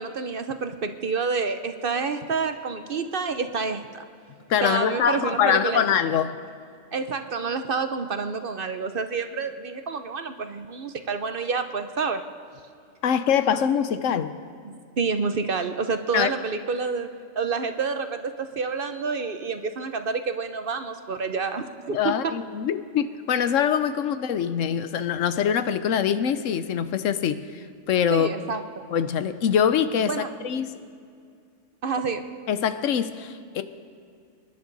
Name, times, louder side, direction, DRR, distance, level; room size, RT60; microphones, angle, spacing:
voice 1, 0.0-4.0 4.6-5.8 6.9-12.2 14.6-17.1 17.4-22.3 28.1-28.8 30.1-30.3 31.8-32.3, right 5 dB, 50° right, 9 dB, 0.8 m, -28 dB
voice 2, 4.5-6.4 13.0-14.3 16.1-16.3 21.9-28.3 28.9-30.7 32.5-33.6, left 8 dB, 80° left, 12 dB, 1.1 m, -24 dB
26.0 x 11.0 x 4.0 m, 2.3 s
omnidirectional pair, 1.3 m